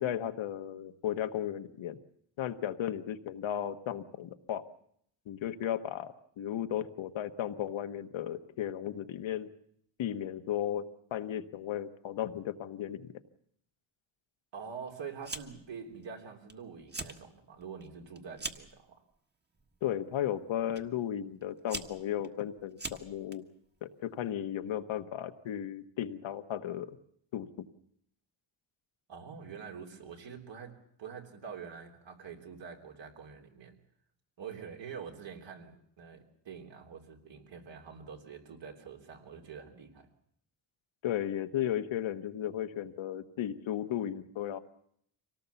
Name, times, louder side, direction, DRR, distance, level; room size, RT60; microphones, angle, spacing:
voice 1, 0.0-2.0 2.4-4.6 5.3-9.5 10.0-10.8 11.1-13.1 19.8-23.4 23.8-26.9 27.3-27.6 41.0-44.6, left 10 dB, 80° left, 8 dB, 1.3 m, -35 dB
voice 2, 14.5-19.0 29.1-33.8 34.4-40.1, right 6 dB, 70° right, 2 dB, 3.6 m, -46 dB
Fire, 15.2-15.7 16.0-16.5 16.8-17.2 17.6-18.8 19.5-19.9 20.8-20.9 21.4-23.4, right 3 dB, 20° right, 1.6 m, -41 dB
24.5 x 18.5 x 7.1 m, 0.69 s
cardioid pair, 90°, 46 cm